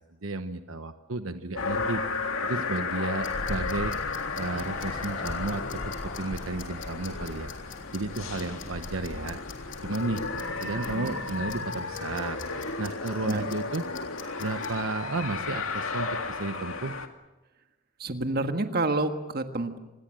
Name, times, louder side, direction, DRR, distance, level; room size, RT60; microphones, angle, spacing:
voice 1, 0.2-2.0 2.4-3.9 4.4-7.5 7.9-9.4 9.8-10.2 10.6-12.4 12.8-13.8 14.4-17.0, right 2 dB, 75° right, 9 dB, 1.0 m, -33 dB
sound 1, 1.6-17.1, left 4 dB, 80° left, 2.1 m, -34 dB
sound 2, 3.0-14.8, left 7 dB, 65° left, 3.6 m, -49 dB
sound 3, 3.2-11.6, left 2 dB, 40° left, 1.0 m, -41 dB
voice 2, 18.0-19.8, right 2 dB, 45° right, 7 dB, 1.6 m, -28 dB
26.5 x 20.5 x 7.7 m, 1.1 s
head